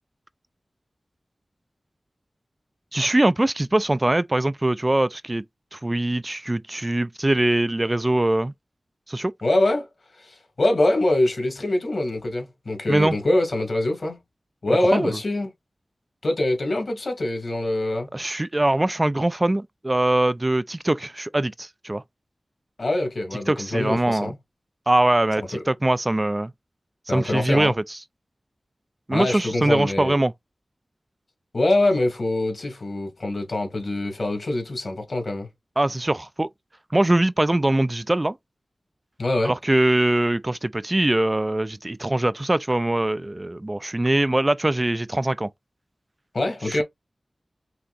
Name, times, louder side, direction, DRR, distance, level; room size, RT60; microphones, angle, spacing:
voice 1, 2.9-5.4 5.7-8.5 9.1-9.3 12.9-13.2 14.7-15.1 18.1-22.0 23.5-24.3 24.9-26.5 27.1-28.0 29.1-30.3 35.8-36.5 36.9-38.4 39.4-45.5 46.7-46.8, right 1 dB, 25° right, 0.3 m, -22 dB
voice 2, 9.4-9.9 10.2-14.2 14.6-15.5 16.2-18.1 22.8-24.3 25.5-25.6 27.1-27.7 29.1-30.1 31.5-35.5 39.2-39.6 46.3-46.8, left 1 dB, 70° left, 2.4 m, -24 dB
5.8 x 2.9 x 2.6 m
wide cardioid pair, 60°, 0 cm